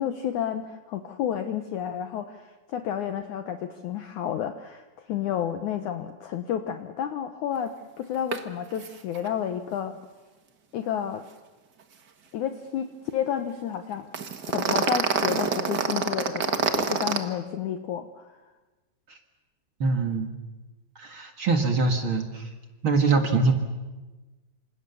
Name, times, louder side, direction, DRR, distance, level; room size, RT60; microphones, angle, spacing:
voice 1, 0.0-9.9 10.7-11.2 12.3-14.1 14.5-18.3, left 9 dB, 70° left, 8 dB, 2.0 m, -31 dB
sound 1, 8.3-8.4 8.7-8.9 9.1-9.3 14.1-17.2, right 6 dB, 80° right, 0.9 m, -26 dB
voice 2, 19.8-20.3 21.0-22.5 22.8-23.5, right 3 dB, 45° right, 5 dB, 1.9 m, -23 dB
28.0 x 26.5 x 7.0 m, 1.2 s
omnidirectional pair, 4.5 m